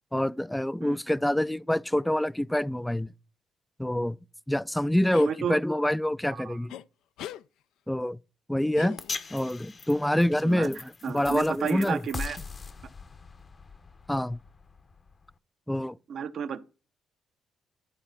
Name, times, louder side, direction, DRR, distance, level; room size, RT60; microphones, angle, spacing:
voice 1, 0.1-3.1 3.8-4.2 4.5-6.7 7.9-8.2 8.5-9.0 9.3-12.0 14.1-14.4 15.7-16.0, left 1 dB, 5° left, 0.3 m, -26 dB
sound 1, 5.1-5.4 6.7-6.8 7.2-7.4 8.7-9.4, left 12 dB, 85° left, 0.3 m, -41 dB
voice 2, 5.2-5.6 6.3-6.6 10.4-10.7 11.0-12.4 16.1-16.6, right 7 dB, 65° right, 0.7 m, -32 dB
sound 2, 9.0-15.3, left 4 dB, 35° left, 0.7 m, -41 dB
11.0 x 4.0 x 5.6 m
cardioid pair, 90°, 0 cm